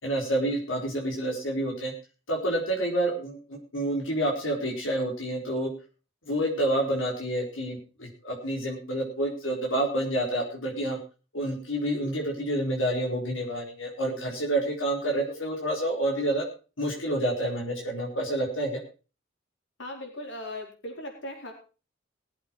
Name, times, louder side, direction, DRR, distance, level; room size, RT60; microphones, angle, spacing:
voice 1, 0.0-1.9 2.3-5.7 6.3-11.0 11.3-16.5 16.8-18.8, right 1 dB, 90° left, -1 dB, 4.1 m, -28 dB
voice 2, 19.8-21.5, left 1 dB, 70° left, 1 dB, 4.5 m, -38 dB
20.0 x 8.2 x 4.5 m, 0.34 s
head